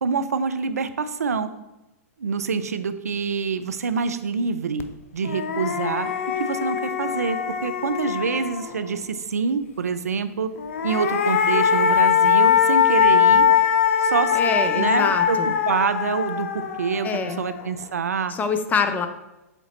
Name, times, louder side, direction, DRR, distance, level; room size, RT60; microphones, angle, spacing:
voice 1, 0.0-1.5 2.2-4.8 5.1-6.1 6.4-10.5 10.8-13.5 14.0-14.4 14.7-15.4 15.7-18.3, right 5 dB, 80° right, 11 dB, 0.5 m, -26 dB
sound 1, 4.8-4.9 5.2-8.9 10.6-17.8, left 7 dB, 60° left, 0.6 m, -21 dB
voice 2, 14.3-15.5 17.0-17.4 18.3-19.1, left 5 dB, 20° left, 8 dB, 0.6 m, -25 dB
7.1 x 4.1 x 4.2 m, 0.97 s
hypercardioid pair, 105°, 8 cm